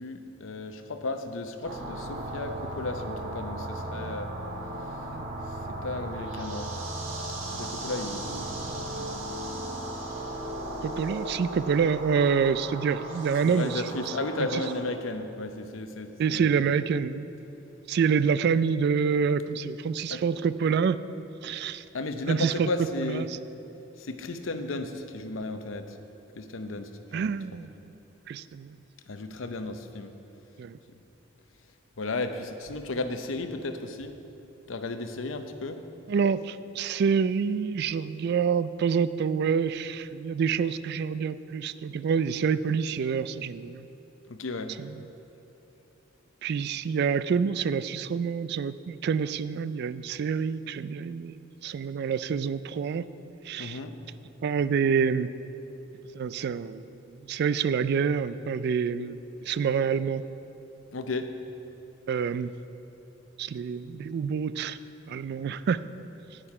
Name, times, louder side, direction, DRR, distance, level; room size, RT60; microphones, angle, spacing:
voice 1, 0.0-4.3 5.5-6.7 7.5-9.1 13.4-16.5 20.1-20.2 21.5-21.6 21.9-23.3 24.0-26.0 26.3-27.4 29.1-30.1 30.9-31.0 32.0-34.1 34.7-35.8 44.3-44.7 53.6-53.9 60.9-61.3, left 2 dB, 75° left, 8 dB, 0.7 m, -34 dB
sound 1, 1.6-14.7, right 1 dB, 80° right, 1.7 m, -36 dB
voice 2, 10.8-13.8 14.5-14.6 16.2-17.3 17.9-21.0 21.4-21.8 22.3-22.7 23.0-23.3 27.1-27.7 28.3-28.8 30.6-30.8 36.1-43.8 44.8-44.9 46.4-53.0 53.4-53.8 54.4-55.3 56.1-57.0 57.3-60.2 62.1-62.5 63.4-64.8 65.1-65.8, right 6 dB, 55° right, 15 dB, 0.3 m, -27 dB
9.9 x 9.0 x 4.8 m, 2.9 s
head